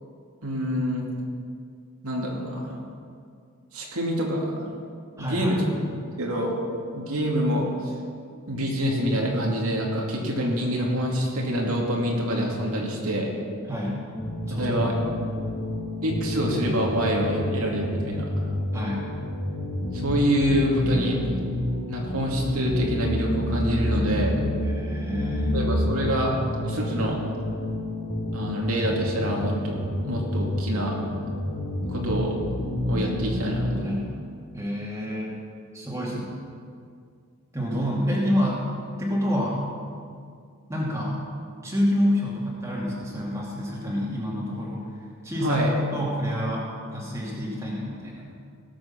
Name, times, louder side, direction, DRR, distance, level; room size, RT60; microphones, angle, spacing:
voice 1, 0.4-1.1 2.0-2.7 3.7-4.5 5.2-5.6 6.2-6.6 6.9-7.7 8.5-13.3 14.5-14.9 16.0-18.3 19.9-21.2 21.9-24.3 25.5-26.4 26.6-27.2 28.3-31.0 31.9-32.4 32.9-34.0 45.4-45.7, equal, 85° right, -2 dB, 2.5 m, -26 dB
voice 2, 5.2-5.6 13.7-13.9 14.5-14.9 18.7-19.1 24.6-25.6 33.7-34.0 34.5-35.3 35.7-36.3 37.5-38.6 39.0-39.6 40.7-41.2 41.6-44.8 45.2-45.6 45.9-48.3, equal, 15° right, -5 dB, 2.5 m, -28 dB
sound 1, 14.1-34.0, left 1 dB, 35° left, 3.0 m, -29 dB
18.0 x 7.7 x 6.0 m, 2.3 s
head